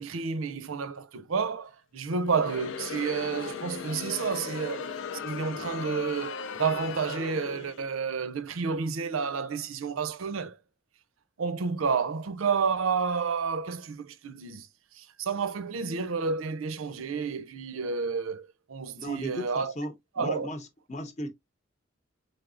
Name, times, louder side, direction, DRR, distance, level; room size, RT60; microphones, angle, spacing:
voice 1, 0.0-5.0 5.2-10.6 11.4-14.7 14.9-19.7 20.2-20.5, right 5 dB, 90° right, 0.6 m, -30 dB
Crowd, 2.2-7.9, left 6 dB, 65° left, 0.4 m, -37 dB
voice 2, 19.0-21.3, left 1 dB, 35° left, 0.8 m, -37 dB
4.0 x 3.4 x 2.4 m
head